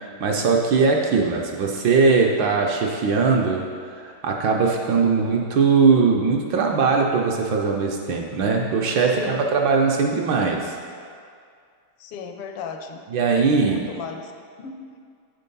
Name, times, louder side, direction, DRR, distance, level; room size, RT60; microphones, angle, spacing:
voice 1, 0.0-3.7 4.0-10.8 13.1-13.8, right 4 dB, 70° right, 0 dB, 1.2 m, -20 dB
voice 2, 5.0-5.4 9.0-9.6 12.0-13.0 13.6-14.3 14.6-15.0, left 6 dB, 85° left, 5 dB, 1.6 m, -36 dB
8.3 x 4.5 x 5.3 m, 2.2 s
omnidirectional pair, 2.4 m